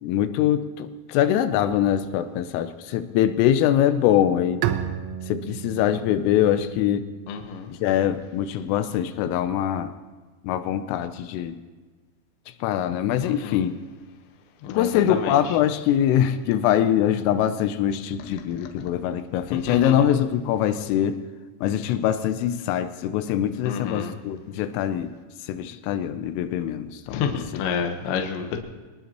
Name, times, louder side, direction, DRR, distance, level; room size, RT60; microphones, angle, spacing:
voice 1, 0.0-4.6 5.3-7.1 7.7-9.9 10.4-11.6 12.6-13.8 14.7-21.2 21.6-25.1 25.4-27.6, left 10 dB, 90° left, 9 dB, 3.3 m, -23 dB
Bowed string instrument, 4.6-8.1, right 11 dB, 85° right, 3.4 m, -32 dB
voice 2, 7.3-7.7 13.2-13.6 14.6-15.3 19.7-19.9 23.7-24.1 27.1-28.6, left 6 dB, 70° left, 4 dB, 3.2 m, -29 dB
25.0 x 19.5 x 3.0 m, 1.3 s
omnidirectional pair, 5.7 m